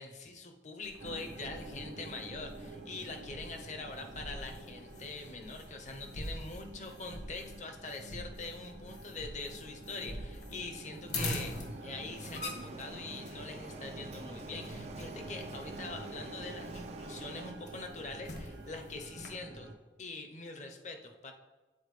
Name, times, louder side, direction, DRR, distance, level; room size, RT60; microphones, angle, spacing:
voice 1, 0.0-19.7 20.0-21.3, left 3 dB, 40° left, 4 dB, 0.7 m, -44 dB
sound 1, 0.8-19.3, left 1 dB, 70° left, 1.3 m, -45 dB
sound 2, 1.0-19.7, right 2 dB, 85° right, 0.7 m, -48 dB
Printer, 11.4-17.5, right 2 dB, 35° right, 0.4 m, -49 dB
8.4 x 4.4 x 3.2 m, 1.2 s
head